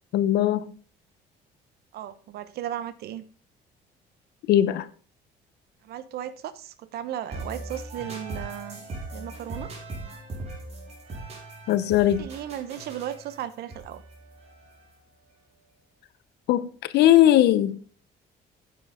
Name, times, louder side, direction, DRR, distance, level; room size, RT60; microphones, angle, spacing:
voice 1, 0.1-0.7 4.5-4.9 11.7-12.3 16.5-18.0, left 12 dB, 75° left, 0.8 m, -20 dB
voice 2, 1.9-3.2 5.8-8.8 9.1-9.7 12.0-14.0, right 11 dB, 70° right, 0.9 m, -35 dB
sound 1, 7.3-15.1, right 2 dB, 40° right, 4.4 m, -39 dB
9.6 x 8.6 x 3.7 m
cardioid pair, 110°, 17 cm